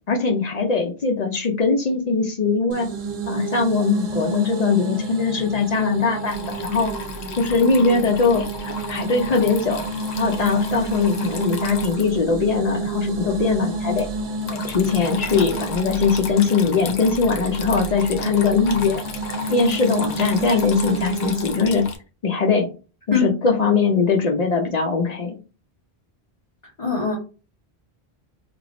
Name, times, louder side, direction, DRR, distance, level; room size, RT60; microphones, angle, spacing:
voice 1, 0.1-2.9 3.3-6.9 7.4-9.9 10.2-14.1 14.5-19.0 19.5-21.8 22.2-22.7 23.1-25.4, left 4 dB, 55° left, 2 dB, 0.5 m, -21 dB
sound 1, 2.7-21.6, right 3 dB, 90° right, 1.0 m, -30 dB
Water tap faucet / Trickle dribble, 6.2-22.0, left 4 dB, 90° left, 0.8 m, -35 dB
voice 2, 26.8-27.2, left 5 dB, 30° left, -6 dB, 1.0 m, -21 dB
3.0 x 2.0 x 3.8 m, 0.34 s
omnidirectional pair, 1.1 m